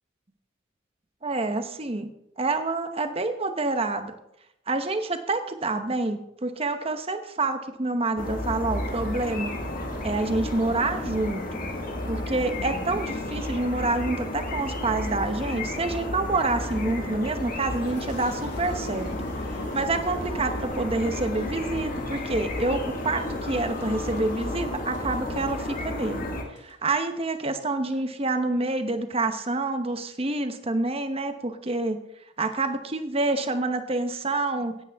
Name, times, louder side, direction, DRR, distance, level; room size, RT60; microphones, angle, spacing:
voice 1, 1.2-2.1 2.4-4.1 4.7-9.5 10.0-11.5 12.0-19.1 19.7-26.3 26.6-32.0 32.4-34.8, right 2 dB, 30° right, 8 dB, 0.9 m, -27 dB
sound 1, 8.2-26.4, left 1 dB, 45° left, 1.9 m, -32 dB
Boom, 17.7-27.1 27.6-28.1, left 1 dB, 60° left, 1.6 m, -48 dB
16.5 x 9.0 x 3.5 m, 0.83 s
head